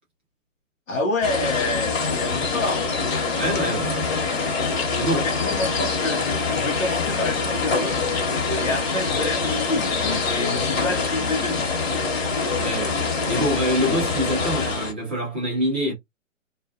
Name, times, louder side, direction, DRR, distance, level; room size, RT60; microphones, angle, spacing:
voice 1, 0.9-2.9 5.1-8.0 8.6-11.8, left 2 dB, 75° left, 0.9 m, -28 dB
sound 1, 1.2-14.9, left 4 dB, 50° left, 1.2 m, -25 dB
voice 2, 3.3-4.3 4.9-5.3 12.5-15.9, equal, 10° right, 0.3 m, -26 dB
2.3 x 2.2 x 2.4 m
figure-of-eight pair, 125°, 39 cm